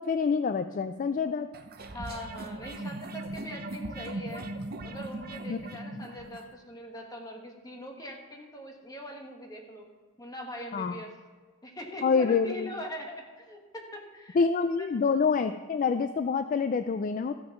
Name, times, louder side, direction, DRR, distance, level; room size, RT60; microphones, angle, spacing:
voice 1, 0.0-1.5 5.5-5.6 6.0-6.1 10.7-11.0 12.0-12.7 14.4-17.3, left 5 dB, 40° left, 10 dB, 0.3 m, -26 dB
sound 1, 1.5-6.5, right 2 dB, 45° right, 0.9 m, -39 dB
voice 2, 1.9-4.5 4.8-9.8 10.2-11.1 11.6-14.5 14.8-14.9, equal, 20° left, 1 dB, 1.5 m, -42 dB
14.0 x 6.2 x 6.0 m, 1.4 s
head